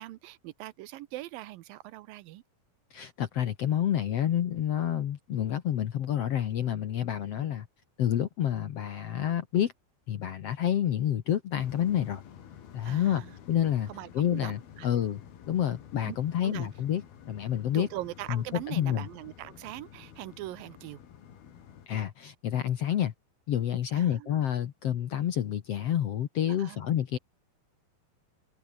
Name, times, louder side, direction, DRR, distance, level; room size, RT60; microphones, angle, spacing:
voice 1, 0.0-2.4 7.4-7.5 12.8-13.3 13.9-14.9 16.1-16.2 16.4-16.7 17.7-21.0 23.9-24.3 26.6-26.8, right 16 dB, 80° right, 2.5 m, -41 dB
voice 2, 2.9-7.7 8.0-9.7 10.1-12.2 12.7-13.2 13.5-17.9 18.3-19.1 21.9-23.1 23.5-27.2, left 10 dB, 60° left, 1.7 m, -29 dB
sound 1, 11.6-21.9, left 9 dB, 85° left, 4.6 m, -50 dB
omnidirectional pair, 4.2 m